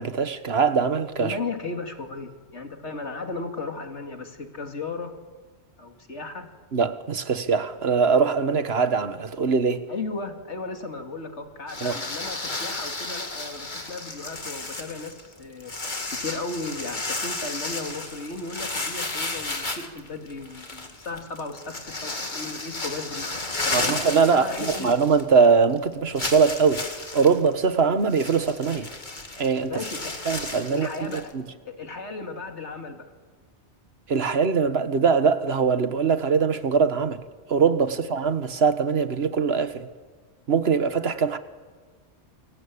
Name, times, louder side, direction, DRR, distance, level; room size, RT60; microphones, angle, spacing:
voice 1, 0.0-1.4 6.7-9.8 11.8-11.9 23.7-26.8 27.1-28.9 29.4-29.8 30.3-31.4 34.1-37.2 37.5-39.9 40.5-41.4, right 5 dB, 65° right, 1.6 m, -22 dB
voice 2, 1.2-5.1 5.8-6.5 9.9-15.8 16.1-23.3 23.6-24.0 24.3-24.9 29.7-30.2 30.7-31.3 31.6-33.1 37.9-38.0, left 3 dB, 85° left, 2.9 m, -35 dB
sound 1, 11.7-25.5 25.7-25.8 26.2-31.3, left 2 dB, 45° left, 2.4 m, -33 dB
28.0 x 24.0 x 8.7 m
omnidirectional pair, 1.2 m